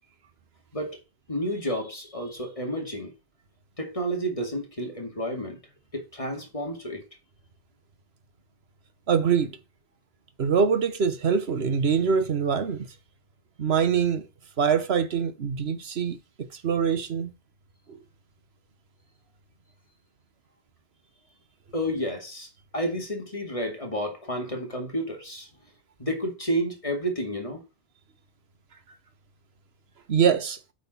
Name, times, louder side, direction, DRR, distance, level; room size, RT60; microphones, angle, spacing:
voice 1, 1.3-3.1 3.8-5.6 5.9-7.0 21.7-25.5 26.0-27.6, equal, 30° left, 2.4 m, -31 dB
voice 2, 9.1-9.6 10.4-12.9 13.6-14.3 14.6-17.3 17.9-18.0 30.1-30.6, right 6 dB, 70° right, 1.3 m, -24 dB
8.2 x 6.2 x 4.3 m
omnidirectional pair, 1.1 m